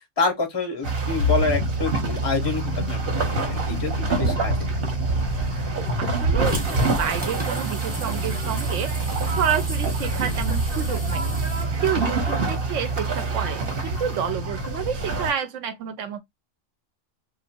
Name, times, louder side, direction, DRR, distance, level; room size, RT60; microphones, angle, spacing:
voice 1, 0.2-4.6, left 4 dB, 30° left, 0.5 m, -27 dB
sound 1, 0.8-15.3, right 3 dB, 50° right, 1.0 m, -26 dB
sound 2, 1.2-7.2, left 7 dB, 75° left, 1.0 m, -32 dB
voice 2, 6.0-8.9 9.3-11.4 11.8-16.2, right 8 dB, 70° right, 0.9 m, -29 dB
sound 3, 6.4-14.3, equal, 10° right, 0.7 m, -37 dB
2.5 x 2.4 x 2.7 m
omnidirectional pair, 1.4 m